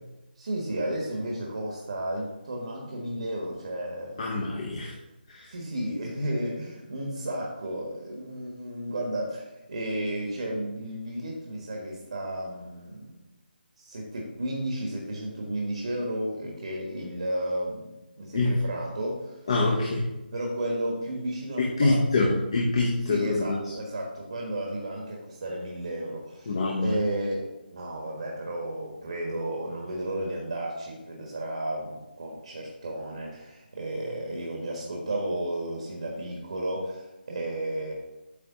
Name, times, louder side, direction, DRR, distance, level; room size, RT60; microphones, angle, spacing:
voice 1, 0.4-4.4 5.5-13.2 13.8-17.9 18.2-19.4 20.3-22.4 23.0-37.9, right 1 dB, 45° right, 0 dB, 1.4 m, -33 dB
voice 2, 4.2-4.9 5.3-5.5 18.3-18.6 19.5-20.1 21.6-23.6 26.5-26.9, left 2 dB, 30° left, -2 dB, 0.7 m, -25 dB
8.3 x 3.2 x 6.0 m, 1.0 s
hypercardioid pair, 180°, 6 cm